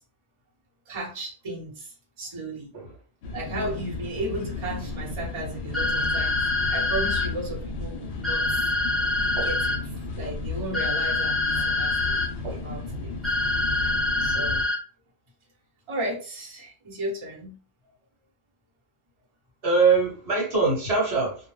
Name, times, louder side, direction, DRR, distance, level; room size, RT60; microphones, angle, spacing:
voice 1, 0.9-2.7 3.3-8.7 9.4-12.1 12.5-13.2 14.2-14.7 15.9-17.5, right 1 dB, 30° right, -3 dB, 0.8 m, -35 dB
sound 1, 3.2-14.6, left 3 dB, 65° left, 0.7 m, -34 dB
sound 2, 5.7-7.3 8.2-9.8 10.7-12.3 13.2-14.8, left 2 dB, ahead, 0.5 m, -25 dB
voice 2, 19.6-21.4, right 4 dB, 65° right, -2 dB, 1.1 m, -22 dB
2.1 x 2.1 x 3.1 m, 0.39 s
omnidirectional pair, 1.2 m